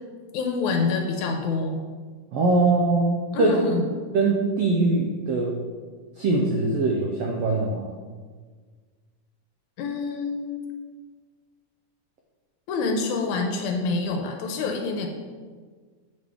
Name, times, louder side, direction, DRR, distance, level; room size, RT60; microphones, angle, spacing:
voice 1, 0.3-1.8 3.3-3.8 9.8-10.7 12.7-15.1, left 4 dB, 75° left, 3 dB, 1.9 m, -26 dB
voice 2, 2.3-3.7 4.1-5.6 6.2-7.9, right 3 dB, 85° right, 0 dB, 1.3 m, -22 dB
8.0 x 5.2 x 3.5 m, 1.5 s
omnidirectional pair, 3.6 m